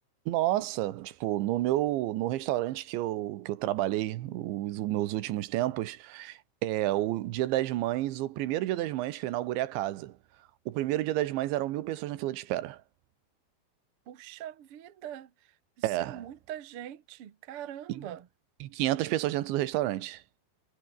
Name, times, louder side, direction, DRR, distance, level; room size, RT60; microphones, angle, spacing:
voice 1, 0.3-10.2 10.7-12.8 15.8-16.3 17.9-18.1 18.6-20.2, right 15 dB, 80° right, 3.5 m, -30 dB
voice 2, 14.1-15.3 16.1-18.3, right 11 dB, 65° right, 1.4 m, -42 dB
omnidirectional pair, 5.2 m